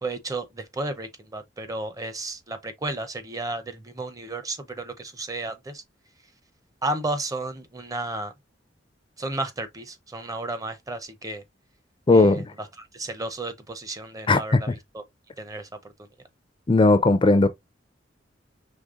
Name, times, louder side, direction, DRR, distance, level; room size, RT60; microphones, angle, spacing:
voice 1, 0.0-5.8 6.8-8.3 9.2-11.4 12.1-12.7 12.9-15.0 15.4-15.7, right 2 dB, 20° right, 0.6 m, -33 dB
voice 2, 12.1-12.4 14.3-14.7 16.7-17.5, left 2 dB, 25° left, 0.4 m, -17 dB
5.1 x 3.3 x 2.4 m
head